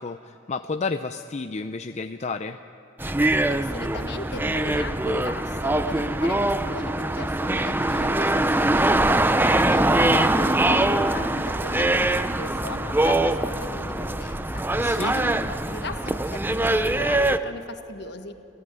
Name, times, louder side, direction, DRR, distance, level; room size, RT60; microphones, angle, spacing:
voice 1, 0.0-2.6 10.0-10.3 14.8-15.1, left 4 dB, 35° left, 8 dB, 0.5 m, -31 dB
sound 1, 3.0-17.4, right 1 dB, 10° right, 0.6 m, -23 dB
voice 2, 3.4-18.3, left 2 dB, 60° left, 8 dB, 1.4 m, -38 dB
28.5 x 15.5 x 9.5 m, 3.0 s
head